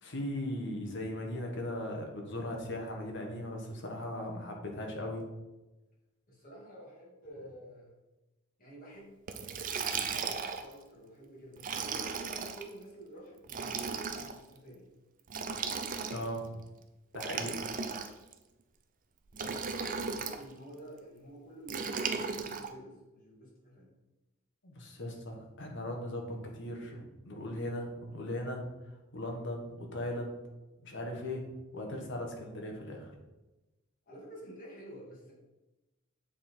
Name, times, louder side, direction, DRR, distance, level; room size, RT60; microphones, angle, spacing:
voice 1, 0.0-5.2 16.1-16.5 17.1-17.7 24.6-28.7 29.1-30.4 30.8-33.1, left 1 dB, 60° left, 1 dB, 1.3 m, -38 dB
voice 2, 6.3-8.0 8.6-9.2 10.0-14.9 19.3-23.9 34.1-35.3, right 1 dB, 45° left, -4 dB, 2.4 m, -50 dB
Liquid, 9.3-10.7 11.6-12.6 13.4-14.3 15.3-16.4 17.1-18.3 19.3-20.4 21.7-22.7, right 5 dB, 40° right, 0.5 m, -36 dB
7.4 x 3.8 x 4.4 m, 1.1 s
head